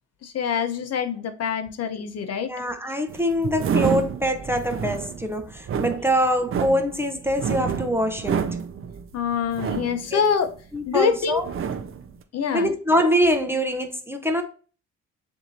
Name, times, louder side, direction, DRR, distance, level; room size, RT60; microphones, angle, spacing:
voice 1, 0.2-2.5 9.1-10.5 10.9-11.4 12.3-12.7, left 7 dB, 55° left, 0.8 m, -25 dB
voice 2, 2.4-8.4 10.1-10.2 10.7-11.5 12.5-14.4, equal, 10° right, 0.6 m, -24 dB
sound 1, 3.1-11.0 11.3-12.1, right 6 dB, 45° right, 0.5 m, -29 dB
7.2 x 2.8 x 2.7 m
cardioid pair, 90°, 30 cm